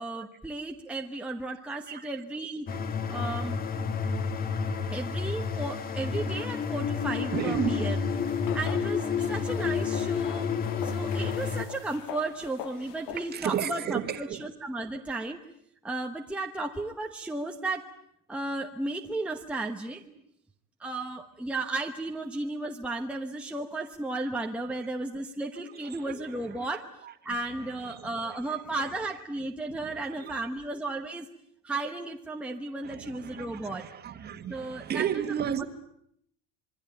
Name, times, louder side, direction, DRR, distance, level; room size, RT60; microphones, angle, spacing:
voice 1, 0.0-2.7 3.1-3.6 4.9-8.0 8.5-10.5 10.8-15.4 15.8-17.9 18.3-20.0 20.8-26.9 27.2-31.3 31.6-33.8 34.5-35.1, right 2 dB, 5° right, 1.0 m, -34 dB
voice 2, 1.7-2.1 7.3-7.9 10.6-10.7 13.1-14.5 20.0-20.1 25.7-26.7 27.0-29.0 29.7-30.5 32.8-35.6, right 8 dB, 25° right, 1.8 m, -35 dB
sound 1, 2.7-11.7, left 5 dB, 25° left, 1.6 m, -30 dB
sound 2, 8.1-13.4, left 12 dB, 60° left, 1.7 m, -42 dB
27.0 x 22.5 x 9.1 m
cardioid pair, 165°, 36 cm